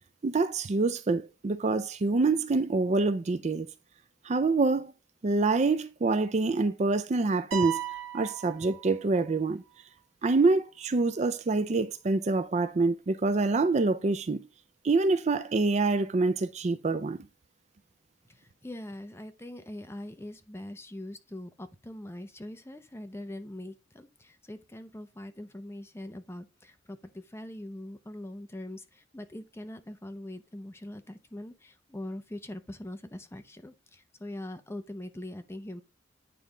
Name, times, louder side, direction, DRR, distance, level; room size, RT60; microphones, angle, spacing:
voice 1, 0.2-3.7 4.2-4.9 5.2-7.8 8.1-9.6 10.2-14.4 14.8-17.2, right 3 dB, 35° right, 0.4 m, -26 dB
sound 1, 7.5-9.4, right 12 dB, 75° right, 1.0 m, -36 dB
voice 2, 18.3-35.8, left 1 dB, 15° left, 0.7 m, -42 dB
9.2 x 3.4 x 3.8 m
head